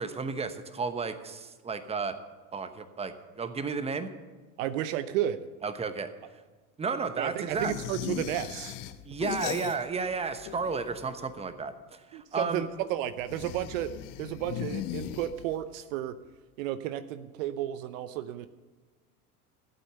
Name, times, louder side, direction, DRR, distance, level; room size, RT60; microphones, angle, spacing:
voice 1, 0.0-2.2 2.5-4.1 5.6-6.1 6.8-7.7 9.0-12.7, right 4 dB, 15° right, 10 dB, 1.0 m, -33 dB
voice 2, 4.6-5.4 7.2-8.7 12.1-13.9 14.2-16.2 16.6-18.5, right 12 dB, 60° right, 13 dB, 0.8 m, -32 dB
sound 1, 7.5-10.1 10.4-11.2 13.2-15.7, left 11 dB, 45° left, 1.0 m, -38 dB
15.5 x 8.4 x 6.9 m, 1.3 s
hypercardioid pair, 85°, 45 cm